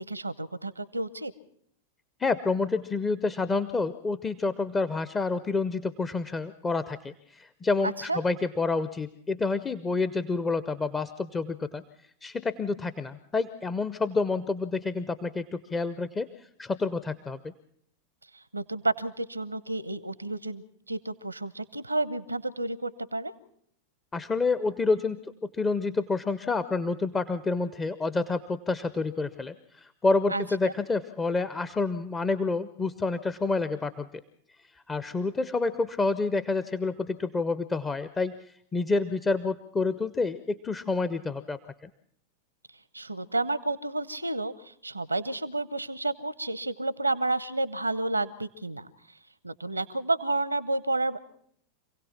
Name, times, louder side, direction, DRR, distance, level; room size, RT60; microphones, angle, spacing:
voice 1, 0.0-1.3 7.8-8.2 18.5-23.3 30.3-30.7 42.9-48.9 49.4-51.2, right 2 dB, 85° right, 19 dB, 0.9 m, -31 dB
voice 2, 2.2-11.8 12.2-16.3 16.6-17.5 24.1-34.1 34.9-38.4 38.7-41.9, left 3 dB, 15° left, 12 dB, 0.8 m, -28 dB
26.5 x 17.0 x 5.9 m, 0.66 s
figure-of-eight pair, 90°, 0 cm